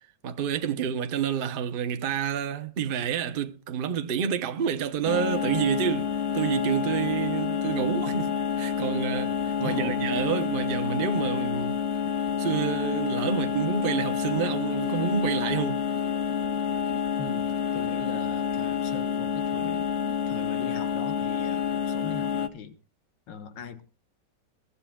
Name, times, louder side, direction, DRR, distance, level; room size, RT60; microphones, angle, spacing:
voice 1, 0.2-6.1 6.3-11.8 12.4-15.9, right 8 dB, 45° right, 0.7 m, -28 dB
sound 1, 5.1-22.5, left 7 dB, 55° left, 0.8 m, -28 dB
voice 2, 9.6-10.0 17.2-19.9 20.3-22.8 23.3-23.8, left 6 dB, 85° left, 1.7 m, -40 dB
22.0 x 12.5 x 2.3 m
omnidirectional pair, 1.9 m